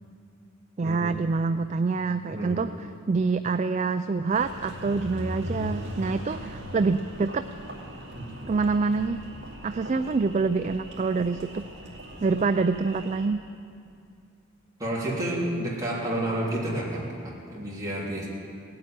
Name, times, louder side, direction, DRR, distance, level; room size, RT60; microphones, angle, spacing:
voice 1, 0.8-2.7 3.1-7.5 8.5-9.2 9.6-11.7 12.2-13.4, right 4 dB, 35° right, 10 dB, 0.3 m, -26 dB
voice 2, 2.3-2.6 8.1-8.5 14.8-18.3, right 1 dB, 15° right, -6 dB, 3.3 m, -30 dB
Engine, 4.3-13.3, equal, 55° right, 2.6 m, -39 dB
18.0 x 8.7 x 8.9 m, 2.4 s
head